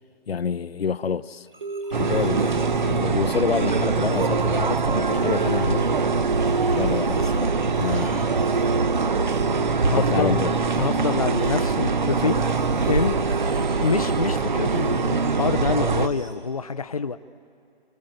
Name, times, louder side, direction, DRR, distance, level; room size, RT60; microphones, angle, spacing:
voice 1, 0.3-1.5 1.9-5.9 6.7-8.4 9.9-10.6, left 7 dB, 90° left, 0.8 m, -28 dB
sound 1, 1.0-16.4, right 3 dB, 20° right, 1.1 m, -36 dB
sound 2, 1.5-16.4, right 2 dB, 65° right, 4.9 m, -47 dB
sound 3, 1.9-16.1, right 4 dB, 50° right, 0.8 m, -23 dB
voice 2, 9.9-10.5 10.8-12.4 12.9-13.2 13.8-17.2, left 5 dB, 40° left, 0.5 m, -26 dB
29.5 x 17.5 x 7.7 m
hypercardioid pair, 175°, 30 cm